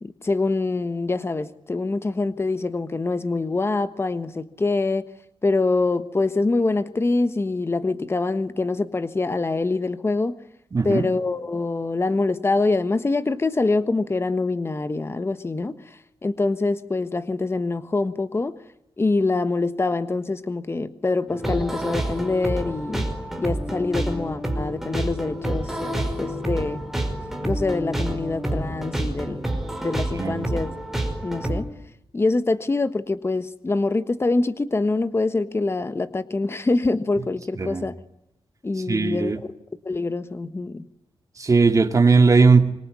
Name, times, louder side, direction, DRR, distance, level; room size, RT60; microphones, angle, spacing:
voice 1, 0.0-5.0 5.4-10.4 10.8-18.6 19.0-23.1 23.4-25.8 26.2-26.8 27.4-30.7 31.2-31.7 32.1-38.0 38.6-39.3 39.8-40.9, left 3 dB, 25° left, 1.4 m, -25 dB
voice 2, 10.7-11.1 30.2-30.5 37.6-37.8 38.9-39.4 41.4-42.7, right 4 dB, 35° right, 2.3 m, -18 dB
sound 1, 21.3-31.6, right 1 dB, 5° right, 5.0 m, -28 dB
26.0 x 23.0 x 9.7 m
wide cardioid pair, 140°, 10 cm